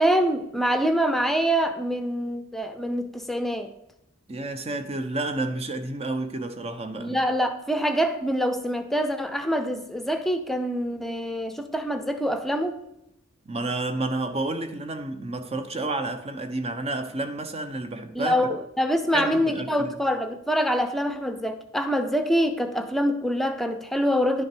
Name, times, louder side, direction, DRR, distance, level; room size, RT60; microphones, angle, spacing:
voice 1, 0.0-3.7 7.0-12.8 18.1-24.4, equal, ahead, 0.7 m, -25 dB
voice 2, 4.3-7.2 13.5-18.5 19.1-19.9, right 2 dB, 30° right, 0.8 m, -30 dB
11.0 x 6.4 x 4.5 m
head